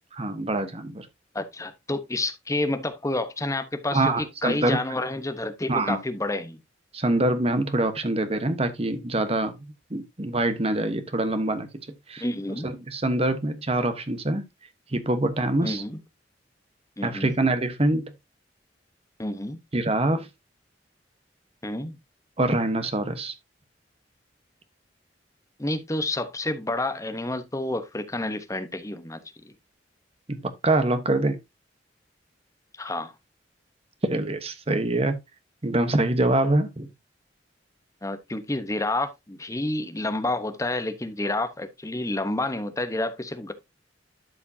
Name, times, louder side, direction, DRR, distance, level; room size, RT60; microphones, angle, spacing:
voice 1, 0.1-1.1 3.9-4.8 5.7-6.0 6.9-9.6 9.9-11.7 12.1-12.2 12.6-14.4 14.9-15.8 17.0-18.1 19.7-20.3 22.4-23.3 30.3-30.4 30.6-31.4 34.0-35.2 35.6-36.9, right 2 dB, 35° right, 1.1 m, -24 dB
voice 2, 1.3-6.6 12.2-12.7 15.6-16.0 17.0-17.3 19.2-19.6 21.6-22.0 25.6-29.5 32.8-33.1 38.0-43.5, left 2 dB, 15° left, 1.0 m, -29 dB
12.0 x 5.1 x 2.7 m
head